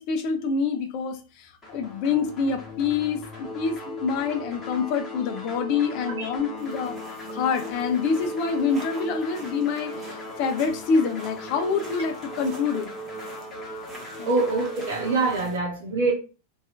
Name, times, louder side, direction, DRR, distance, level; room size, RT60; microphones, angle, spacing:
voice 1, 0.0-7.0 7.3-12.9 14.2-14.3, left 5 dB, 45° left, 0.4 m, -26 dB
sound 1, 1.6-15.3, equal, 20° left, 1.1 m, -37 dB
sound 2, 6.6-15.6, right 2 dB, 20° right, 0.9 m, -46 dB
voice 2, 14.2-16.1, right 3 dB, 60° right, 0.6 m, -25 dB
2.7 x 2.3 x 2.6 m
figure-of-eight pair, 90°, 0 cm